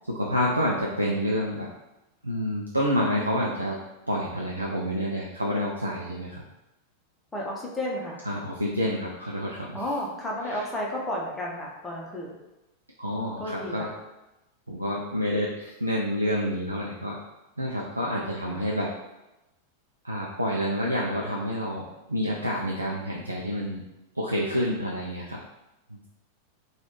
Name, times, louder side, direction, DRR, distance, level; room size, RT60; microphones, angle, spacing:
voice 1, 0.1-1.7 2.2-3.8 4.1-6.4 8.2-9.8 10.5-10.6 13.0-13.9 14.7-17.2 17.6-18.9 20.0-23.8 24.2-25.4, equal, 85° right, -3 dB, 0.3 m, -28 dB
voice 2, 7.3-8.2 9.7-12.4 13.4-13.9 18.5-18.6, left 1 dB, 15° left, -4 dB, 0.7 m, -32 dB
3.0 x 2.3 x 3.1 m, 0.98 s
figure-of-eight pair, 90°, 0 cm